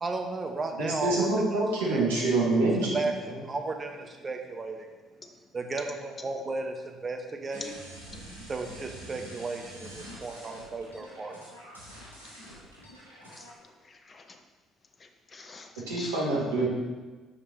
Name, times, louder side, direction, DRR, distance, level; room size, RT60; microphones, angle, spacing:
voice 1, 0.0-2.5 2.8-4.9 5.5-7.8 8.5-11.4, right 3 dB, 30° right, 4 dB, 0.8 m, -35 dB
voice 2, 0.8-3.4 15.9-16.7, right 2 dB, 75° right, -5 dB, 1.4 m, -26 dB
sound 1, 7.5-13.5, equal, 90° left, 1.3 m, -46 dB
voice 3, 13.3-14.4 15.0-16.3, left 4 dB, 30° left, 6 dB, 0.7 m, -46 dB
5.2 x 5.1 x 4.2 m, 1.3 s
figure-of-eight pair, 50°, 0 cm